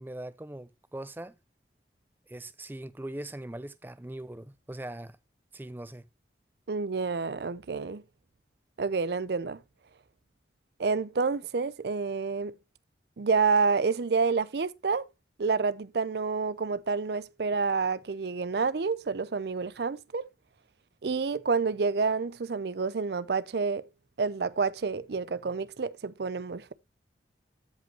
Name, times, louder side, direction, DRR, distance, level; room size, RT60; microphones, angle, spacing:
voice 1, 0.0-1.4 2.3-5.2 5.5-6.1, right 1 dB, 10° right, 0.4 m, -41 dB
voice 2, 6.7-8.0 8.8-9.6 10.8-12.6 13.2-15.1 15.4-20.3 21.0-23.9 24.2-26.7, right 4 dB, 65° right, 0.5 m, -28 dB
13.5 x 5.3 x 2.9 m
head